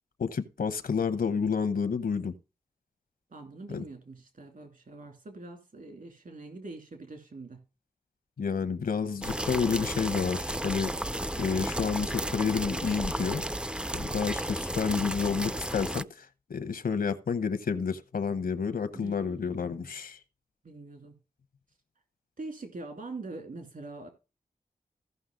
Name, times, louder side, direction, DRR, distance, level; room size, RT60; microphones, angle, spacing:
voice 1, 0.2-2.3 3.7-3.9 8.4-10.9 11.4-13.4 13.9-20.2, left 6 dB, 75° left, 0.9 m, -30 dB
voice 2, 3.3-7.6 19.0-19.9 20.6-21.1 22.4-24.1, right 3 dB, 65° right, 2.8 m, -43 dB
sound 1, 9.2-16.0, right 1 dB, 5° right, 0.4 m, -33 dB
15.0 x 5.6 x 3.8 m
cardioid pair, 50°, 15 cm